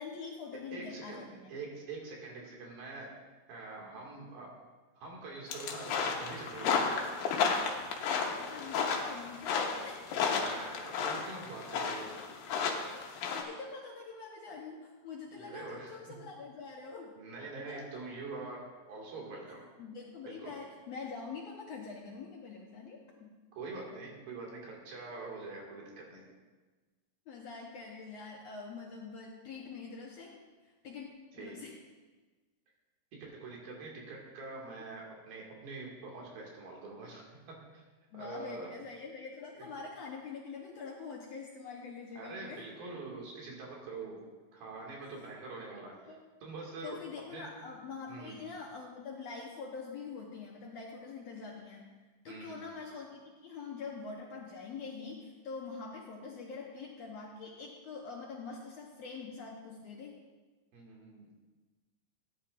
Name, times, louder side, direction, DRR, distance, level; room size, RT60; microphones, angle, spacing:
voice 1, 0.0-1.5 8.4-10.0 13.3-17.1 17.7-18.1 19.8-23.3 27.3-31.1 31.4-31.8 38.1-42.7 45.0-45.1 46.1-46.2 46.8-51.9 52.2-60.2, left 4 dB, 70° left, -1 dB, 1.6 m, -45 dB
voice 2, 0.7-1.2 1.5-3.1 3.5-4.5 5.0-6.9 10.2-12.1 15.4-16.0 17.2-19.7 20.3-20.5 23.6-26.2 31.3-31.6 33.2-37.3 37.7-37.8 38.1-38.7 42.2-44.2 44.5-46.1 46.4-47.0 47.3-47.5 48.1-48.4 52.3-52.7 60.7-61.3, right 3 dB, 85° right, -2 dB, 4.0 m, -44 dB
sound 1, 5.5-13.4, left 5 dB, 85° left, 2.8 m, -33 dB
17.0 x 10.0 x 2.5 m, 1.3 s
omnidirectional pair, 4.0 m